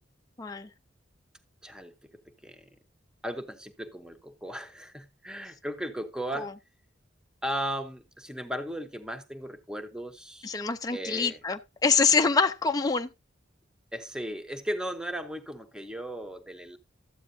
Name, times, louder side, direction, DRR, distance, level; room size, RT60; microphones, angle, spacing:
voice 1, 0.4-0.7 6.4-6.5 10.4-13.1, left 5 dB, 20° left, 0.4 m, -25 dB
voice 2, 1.6-1.9 2.4-2.7 3.2-6.5 7.4-10.6 10.9-11.4 13.9-16.8, equal, 5° right, 0.7 m, -36 dB
12.5 x 8.4 x 2.6 m
head